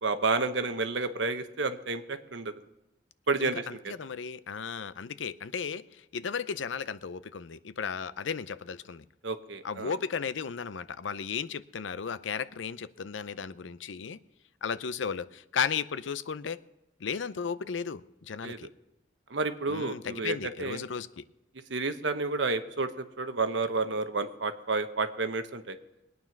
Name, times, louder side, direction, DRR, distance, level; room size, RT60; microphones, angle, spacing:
voice 1, 0.0-2.5 3.3-3.6 9.2-9.9 18.4-18.6 19.3-20.8 21.7-25.8, right 3 dB, 75° right, 9 dB, 1.0 m, -30 dB
voice 2, 3.4-5.8 6.1-9.0 9.6-14.2 14.6-16.6 17.0-18.7 19.7-21.2, left 6 dB, 85° left, 15 dB, 0.6 m, -35 dB
21.0 x 9.4 x 5.9 m, 0.94 s
head